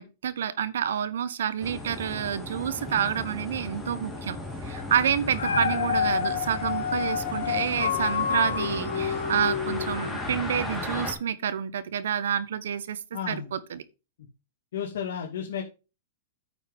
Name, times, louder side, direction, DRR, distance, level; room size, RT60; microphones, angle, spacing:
voice 1, 0.0-4.4 4.6-13.0 13.3-13.8, right 9 dB, 75° right, 1.1 m, -28 dB
sound 1, 1.6-11.1, left 2 dB, 5° left, 3.8 m, -36 dB
Dog, 5.1-10.5 11.0-11.1, left 7 dB, 90° left, 2.2 m, -29 dB
voice 2, 13.1-13.5 14.7-15.6, left 8 dB, 75° left, 2.4 m, -33 dB
9.1 x 7.9 x 3.7 m
hypercardioid pair, 135°, 0 cm